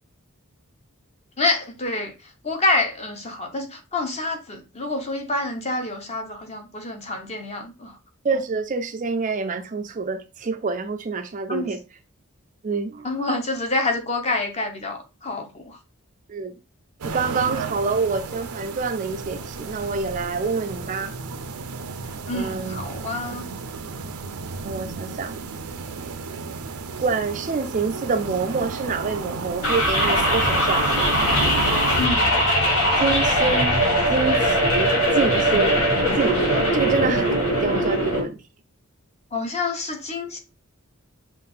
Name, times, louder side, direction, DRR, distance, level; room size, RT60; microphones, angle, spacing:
voice 1, 1.4-2.1 2.4-7.9 11.5-11.7 13.0-15.8 22.3-23.5 32.0-32.4 39.3-40.4, left 2 dB, 30° left, 0.9 m, -27 dB
voice 2, 8.2-11.8 12.6-13.1 16.3-16.5 17.0-21.1 22.3-22.8 24.6-25.3 27.0-30.9 33.0-33.8 34.1-35.8 36.1-38.4, right 4 dB, 35° right, 0.4 m, -26 dB
sound 1, 17.0-32.1, right 4 dB, 90° right, 0.6 m, -33 dB
sound 2, 29.6-38.2, equal, 75° left, 2.3 m, -20 dB
5.6 x 2.5 x 3.5 m
head